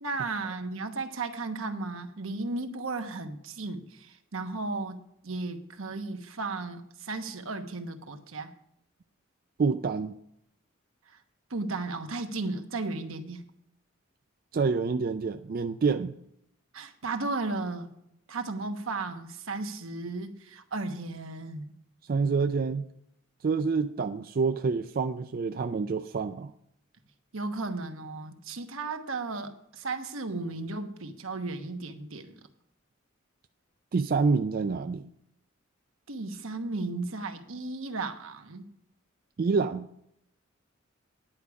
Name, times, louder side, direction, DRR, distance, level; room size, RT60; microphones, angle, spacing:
voice 1, 0.0-8.5 11.5-13.4 16.7-17.9 18.3-21.7 27.3-32.4 36.1-38.7, right 3 dB, 85° right, 6 dB, 1.1 m, -35 dB
voice 2, 9.6-10.1 14.5-16.1 22.1-22.9 23.4-26.5 33.9-35.1 39.4-39.9, right 4 dB, 45° right, 8 dB, 0.4 m, -27 dB
10.5 x 4.9 x 8.1 m, 0.74 s
head